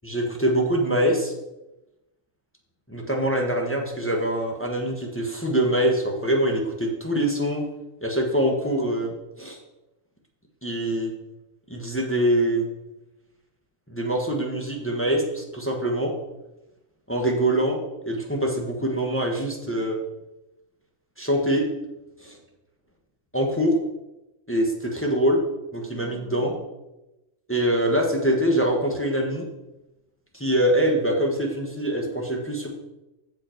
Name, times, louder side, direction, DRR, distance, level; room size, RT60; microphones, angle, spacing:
voice 1, 0.0-1.3 2.9-7.6 8.0-9.1 9.4-9.6 10.6-11.1 11.7-12.6 13.9-16.1 17.1-17.8 18.1-20.0 21.2-21.6 22.2-22.4 23.3-23.8 24.5-25.4 25.7-26.6 27.5-29.5 30.3-32.7, right 1 dB, 10° left, 0 dB, 1.1 m, -24 dB
7.6 x 7.1 x 4.5 m, 0.97 s
omnidirectional pair, 1.4 m